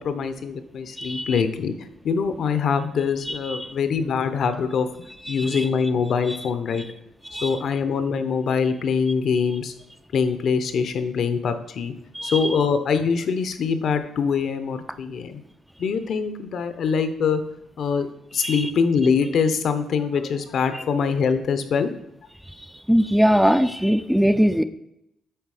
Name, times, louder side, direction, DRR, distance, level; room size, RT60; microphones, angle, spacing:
voice 1, 0.0-1.7 2.0-4.9 5.3-6.8 7.4-9.7 10.1-11.9 12.2-15.4 15.8-17.4 17.8-18.1 18.3-21.9, left 6 dB, 65° left, 10 dB, 0.7 m, -23 dB
voice 2, 1.0-1.4 3.3-3.7 5.3-5.7 6.3-6.4 7.3-7.6 12.1-12.5 18.4-18.7 20.7-20.8 22.9-24.6, equal, ahead, 10 dB, 0.4 m, -21 dB
7.9 x 3.3 x 4.8 m, 0.82 s
cardioid pair, 90°, 0 cm